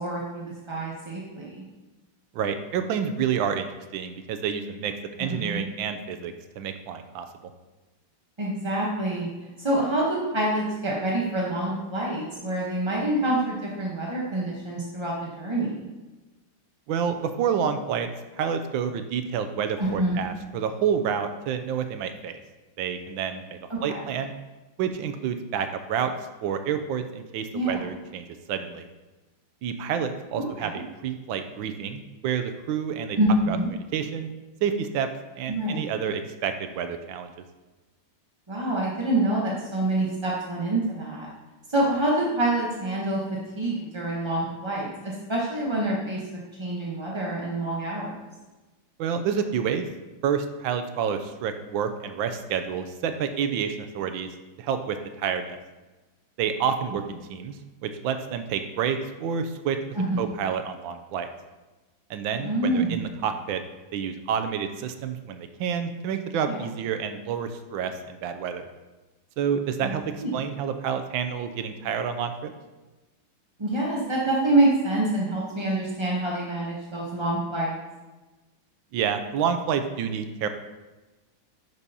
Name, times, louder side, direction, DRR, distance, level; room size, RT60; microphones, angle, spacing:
voice 1, 0.0-1.6 5.2-5.7 8.4-9.3 9.6-15.8 19.8-20.2 23.7-24.0 27.5-27.8 30.4-30.8 33.2-33.7 35.5-35.8 38.5-41.3 41.7-43.2 43.6-46.2 46.6-48.1 59.9-60.2 62.4-62.9 66.5-66.6 69.8-69.9 70.2-70.4 73.6-77.8, right 1 dB, 25° right, -4 dB, 0.6 m, -26 dB
voice 2, 2.3-4.9 5.2-7.5 16.9-22.4 22.8-24.3 24.8-26.1 26.4-28.9 29.6-33.2 33.5-34.3 34.6-35.1 35.4-37.3 49.0-49.9 50.2-54.3 54.6-55.6 56.4-57.6 57.8-59.8 60.2-61.3 62.1-63.6 63.9-68.7 69.4-70.0 70.3-72.5 78.9-80.5, right 7 dB, 90° right, 8 dB, 1.4 m, -29 dB
10.5 x 6.2 x 2.8 m, 1.2 s
omnidirectional pair, 2.1 m